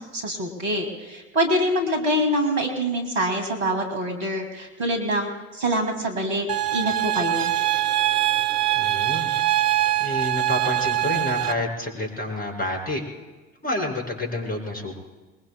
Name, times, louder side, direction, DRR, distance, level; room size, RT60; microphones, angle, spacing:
voice 1, 0.0-6.5 6.7-7.5, equal, 75° right, 4 dB, 2.8 m, -25 dB
sound 1, 6.5-11.5, right 14 dB, 45° right, 0.7 m, -23 dB
voice 2, 8.7-9.3 10.0-13.0 13.6-14.9, left 1 dB, 20° left, 1 dB, 6.0 m, -28 dB
25.5 x 22.0 x 2.3 m, 1.2 s
figure-of-eight pair, 65°, 41 cm